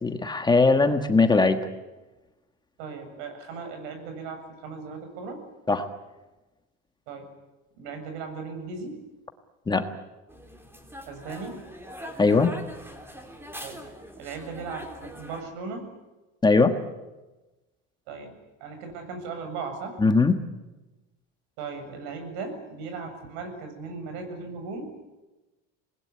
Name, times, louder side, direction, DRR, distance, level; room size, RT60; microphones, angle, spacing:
voice 1, 0.0-1.6 5.7-5.9 9.7-9.9 12.2-12.5 16.4-16.7 20.0-20.3, left 3 dB, 10° left, 7 dB, 1.5 m, -20 dB
voice 2, 2.8-5.4 7.1-7.3 7.8-9.0 11.1-11.6 13.6-13.9 14.2-15.9 18.1-18.3 18.6-20.0 21.6-24.9, right 4 dB, 80° right, 6 dB, 7.6 m, -37 dB
sound 1, 10.3-15.4, equal, 5° right, 3.4 m, -42 dB
26.5 x 20.0 x 9.9 m, 1.1 s
cardioid pair, 145°, 34 cm